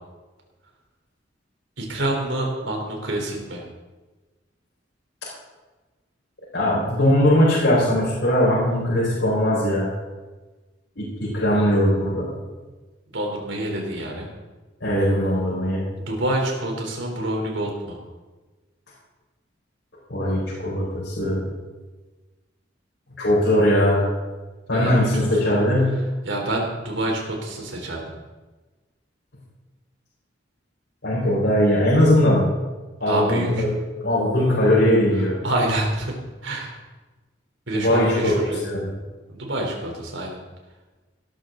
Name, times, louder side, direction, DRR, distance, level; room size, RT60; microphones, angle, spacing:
voice 1, 1.8-3.6 13.1-14.3 16.0-18.0 24.7-25.3 26.2-28.0 33.0-33.7 35.4-36.1 36.4-36.8 37.7-38.6 39.3-40.4, right 1 dB, 85° right, 0 dB, 3.8 m, -27 dB
voice 2, 6.5-9.9 11.0-12.3 14.8-15.8 20.1-21.5 23.2-24.1 24.7-26.0 31.0-32.4 33.0-33.7 34.0-35.4 37.7-38.4 38.6-38.9, left 1 dB, 70° left, -7 dB, 5.1 m, -20 dB
17.5 x 13.0 x 3.9 m, 1.2 s
head